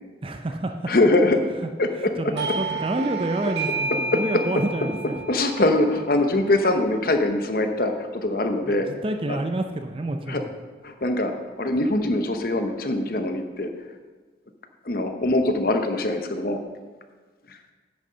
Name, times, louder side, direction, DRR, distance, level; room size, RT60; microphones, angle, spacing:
voice 1, 0.2-0.9 1.6-1.7 1.9-5.2 8.7-10.5, right 1 dB, 30° right, 6 dB, 0.5 m, -29 dB
voice 2, 0.9-1.4 1.8-2.1 5.3-8.9 9.3-9.4 10.3-10.4 10.8-11.3 11.6-13.7 14.8-16.6, left 2 dB, 55° left, 6 dB, 0.8 m, -22 dB
Doorbell, 2.4-7.6, right 3 dB, 75° right, 1.8 m, -32 dB
9.4 x 6.4 x 5.6 m, 1.4 s
head